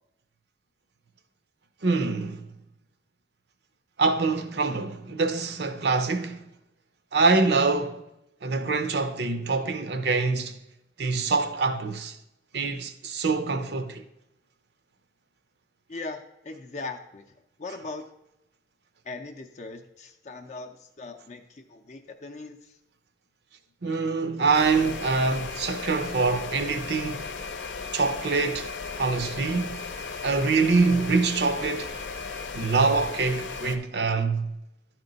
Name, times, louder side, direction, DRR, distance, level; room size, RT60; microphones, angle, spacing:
voice 1, 1.8-2.5 4.0-6.5 7.1-8.0 8.4-10.6 11.0-12.2 12.5-14.0 23.8-27.3 27.9-28.7 29.0-29.8 30.2-32.0 32.5-34.5, right 4 dB, 70° right, 0.6 m, -25 dB
voice 2, 15.9-18.1 19.0-22.8, left 3 dB, 40° left, 0.5 m, -40 dB
sound 1, 24.5-33.8, left 4 dB, 90° left, 0.7 m, -36 dB
11.5 x 4.4 x 3.9 m
head